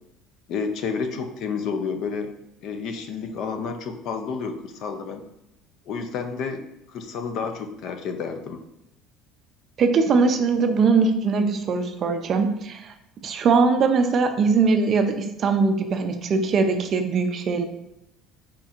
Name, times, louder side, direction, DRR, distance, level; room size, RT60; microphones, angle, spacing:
voice 1, 0.5-2.3 2.6-5.2 5.9-6.6 6.9-8.6, left 5 dB, 50° left, 7 dB, 0.4 m, -30 dB
voice 2, 9.8-12.9 13.2-17.7, right 4 dB, 35° right, 7 dB, 0.4 m, -21 dB
4.3 x 4.2 x 2.4 m, 0.83 s
cardioid pair, 155°, 0 cm